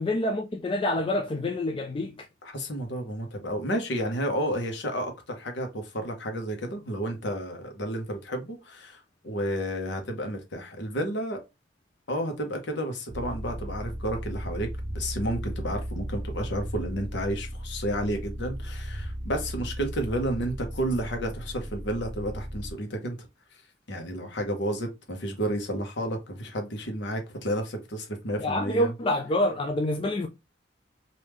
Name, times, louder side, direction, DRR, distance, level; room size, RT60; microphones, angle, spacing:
voice 1, 0.0-2.3 28.4-30.3, left 1 dB, 30° left, 0.3 m, -27 dB
voice 2, 2.4-11.4 12.1-23.2 23.9-28.9, right 1 dB, 65° left, 1.0 m, -31 dB
sound 1, 13.1-22.7, equal, 20° right, 1.3 m, -36 dB
3.5 x 2.6 x 3.1 m
head